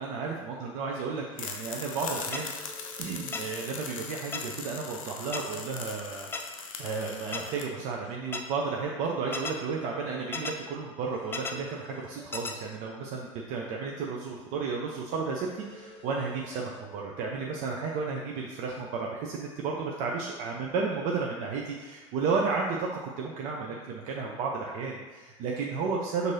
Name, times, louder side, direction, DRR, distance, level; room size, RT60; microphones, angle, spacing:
voice 1, 0.0-2.7 3.0-26.3, right 4 dB, 45° right, -1 dB, 0.5 m, -33 dB
sound 1, 1.4-7.6, left 6 dB, 75° left, 0.5 m, -40 dB
sound 2, 2.3-2.4 3.3-3.4 4.3-4.4 5.3-5.4 6.3-6.4 7.3-7.4 8.3-8.4 9.3-9.5 10.3-10.5 11.3-11.5 12.3-12.5, left 4 dB, 15° left, 0.4 m, -33 dB
sound 3, 2.5-3.8 6.8-8.2 11.1-12.5 15.4-16.8, left 1 dB, 30° left, 0.8 m, -50 dB
6.0 x 2.6 x 2.7 m, 1.3 s
figure-of-eight pair, 80°, 17 cm